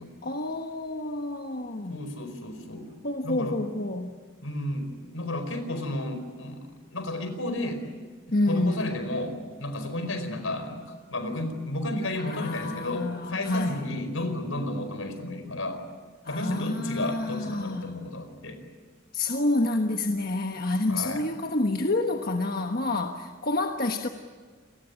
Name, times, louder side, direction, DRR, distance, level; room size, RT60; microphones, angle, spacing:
voice 1, 0.2-2.1 3.0-4.2 8.3-8.9 12.2-13.8 16.2-17.9 19.1-24.1, left 2 dB, 45° left, 4 dB, 1.4 m, -28 dB
voice 2, 1.9-2.9 3.2-3.6 4.4-7.8 8.5-15.8 16.3-18.6 20.9-21.2, left 1 dB, 80° left, 8 dB, 4.7 m, -32 dB
29.0 x 20.5 x 9.8 m, 1.5 s
head